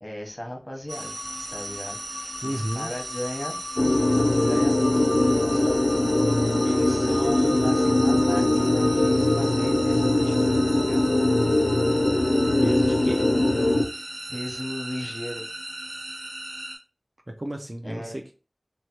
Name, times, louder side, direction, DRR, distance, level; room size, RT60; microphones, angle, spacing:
voice 1, 0.0-1.1 1.5-3.5 3.8-5.2 5.5-5.9 6.2-6.3 6.6-11.1 13.9-14.0 14.3-15.5 17.8-18.3, equal, 25° left, 2 dB, 0.9 m, -36 dB
sound 1, 0.9-16.8, right 1 dB, 75° right, 0.8 m, -35 dB
voice 2, 2.4-2.9 12.6-13.2 17.3-18.3, right 1 dB, 35° right, 2 dB, 0.4 m, -31 dB
sound 2, 3.8-13.9, left 1 dB, 70° left, 0.4 m, -21 dB
3.2 x 2.1 x 2.8 m, 0.33 s
wide cardioid pair, 45°, 0 cm